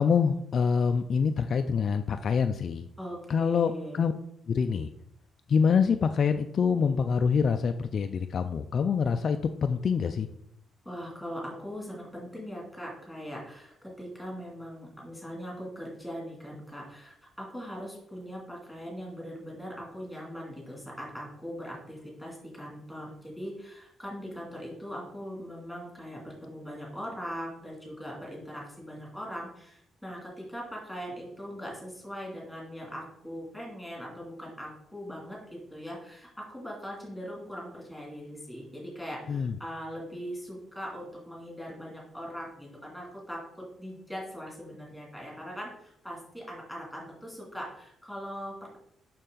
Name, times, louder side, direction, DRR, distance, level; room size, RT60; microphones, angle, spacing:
voice 1, 0.0-2.9 3.3-4.1 4.5-4.9 5.5-10.3 39.3-39.5, left 6 dB, 40° left, 7 dB, 0.3 m, -25 dB
voice 2, 3.0-4.1 10.8-43.4 43.8-48.8, equal, ahead, -3 dB, 2.5 m, -40 dB
6.7 x 5.9 x 3.8 m, 0.74 s
cardioid pair, 160°, 0 cm